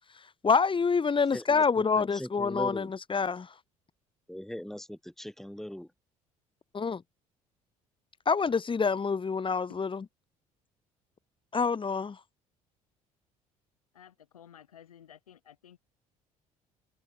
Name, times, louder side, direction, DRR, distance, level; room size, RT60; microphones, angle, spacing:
voice 1, 0.4-3.5 6.7-7.0 8.3-10.1 11.5-12.2, left 5 dB, 30° left, 2.2 m, -27 dB
voice 2, 1.3-2.9 4.3-5.9, equal, ahead, 1.6 m, -39 dB
voice 3, 13.9-15.8, left 9 dB, 80° left, 6.5 m, -53 dB
figure-of-eight pair, 55°, 18 cm